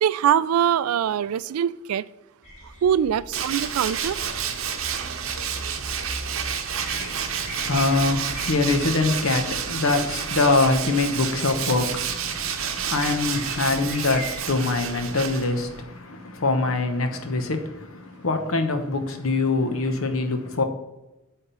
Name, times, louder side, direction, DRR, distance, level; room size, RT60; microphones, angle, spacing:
voice 1, 0.0-2.0 2.6-4.2, right 9 dB, 85° right, 0.3 m, -23 dB
sound 1, 2.4-14.4, equal, 35° left, 2.5 m, -40 dB
Tools, 3.3-15.8, right 7 dB, 65° right, 0.8 m, -30 dB
voice 2, 6.8-20.6, left 3 dB, 70° left, 1.0 m, -24 dB
8.6 x 3.6 x 5.5 m
head